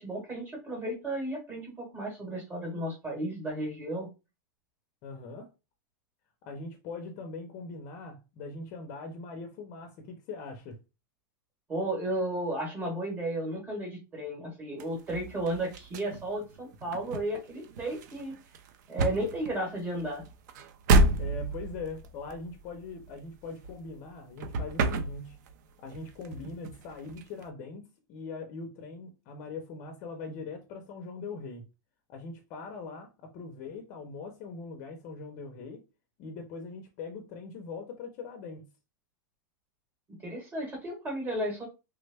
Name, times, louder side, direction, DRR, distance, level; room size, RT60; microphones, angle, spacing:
voice 1, 0.0-4.1 11.7-18.3 18.9-20.2 40.2-41.6, right 1 dB, 15° right, 1.0 m, -33 dB
voice 2, 5.0-5.5 6.4-10.8 21.2-25.4 25.8-31.7 32.1-35.8 36.2-38.7, left 4 dB, 30° left, 0.5 m, -41 dB
sound 1, 14.8-24.1 24.4-25.6 25.9-27.4, right 2 dB, 55° right, 0.5 m, -30 dB
3.3 x 2.1 x 3.3 m
supercardioid pair, 175°, 11 cm